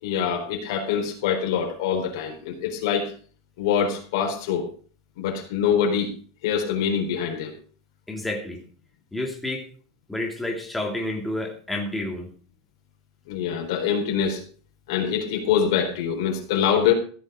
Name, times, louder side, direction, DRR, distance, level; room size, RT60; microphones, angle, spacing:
voice 1, 0.0-3.1 3.6-4.7 5.2-6.1 6.4-7.5 13.3-14.4 14.9-16.9, left 8 dB, 65° left, 2 dB, 4.0 m, -24 dB
voice 2, 8.1-8.6 9.1-9.7 10.1-12.3, left 1 dB, 5° left, 1 dB, 2.9 m, -30 dB
15.0 x 7.9 x 5.0 m, 0.42 s
supercardioid pair, 165°, 2 cm